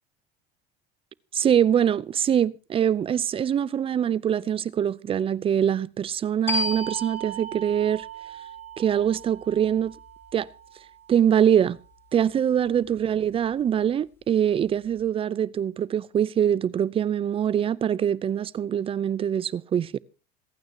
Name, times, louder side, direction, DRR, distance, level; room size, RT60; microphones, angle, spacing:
voice 1, 1.3-8.1 8.8-9.9 10.3-10.5 11.1-11.8 12.1-20.0, right 9 dB, 30° right, 0.6 m, -23 dB
sound 1, 6.5-11.8, right 1 dB, 15° left, 6.6 m, -35 dB
26.5 x 9.2 x 2.8 m
cardioid pair, 130°, 19 cm